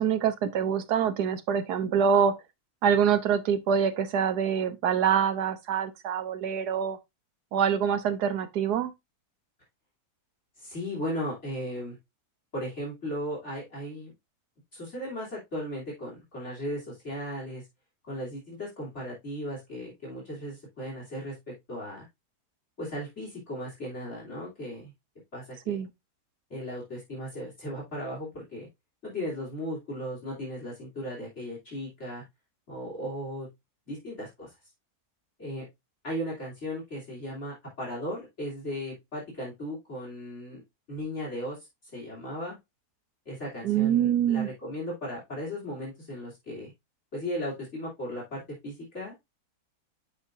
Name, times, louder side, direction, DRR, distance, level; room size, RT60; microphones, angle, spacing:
voice 1, 0.0-2.3 2.8-7.0 7.5-8.9 25.7-25.9 43.6-44.5, right 8 dB, 80° right, 1.4 m, -25 dB
voice 2, 10.6-12.0 12.5-14.1 14.7-17.6 18.0-22.1 22.8-24.9 25.3-25.8 26.5-28.7 29.0-32.2 32.7-33.5 33.9-34.5 35.4-35.6 36.0-40.6 40.9-41.7 41.9-42.6 43.2-46.7 47.1-49.2, equal, 45° left, 3.4 m, -36 dB
8.2 x 5.4 x 2.6 m
omnidirectional pair, 1.7 m